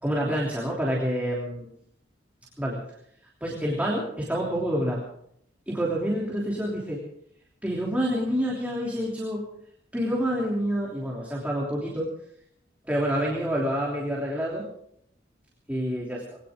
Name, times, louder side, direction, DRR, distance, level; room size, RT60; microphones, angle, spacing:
voice 1, 0.0-1.7 2.6-2.8 3.4-5.0 5.7-7.0 7.6-9.4 9.9-12.1 12.9-14.7 15.7-16.4, equal, 10° right, -4 dB, 3.0 m, -27 dB
21.0 x 17.5 x 3.7 m, 0.71 s
head